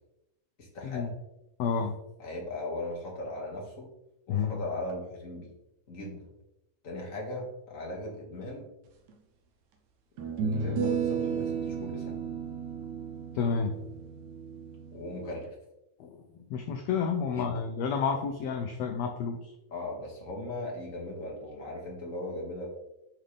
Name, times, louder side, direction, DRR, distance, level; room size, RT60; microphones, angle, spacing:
voice 1, 0.6-1.1 2.2-3.9 4.3-5.5 5.9-6.3 6.8-8.7 10.2-12.2 14.9-15.5 17.3-17.5 19.7-22.7, left 1 dB, 30° left, -2 dB, 1.9 m, -38 dB
voice 2, 1.6-1.9 4.3-4.6 13.3-13.7 16.0-16.2 16.5-19.4, left 6 dB, 75° left, 4 dB, 1.6 m, -30 dB
sound 1, 9.1-9.2 10.2-15.4, right 6 dB, 75° right, 2.3 m, -33 dB
10.0 x 5.5 x 3.4 m, 0.89 s
omnidirectional pair, 3.7 m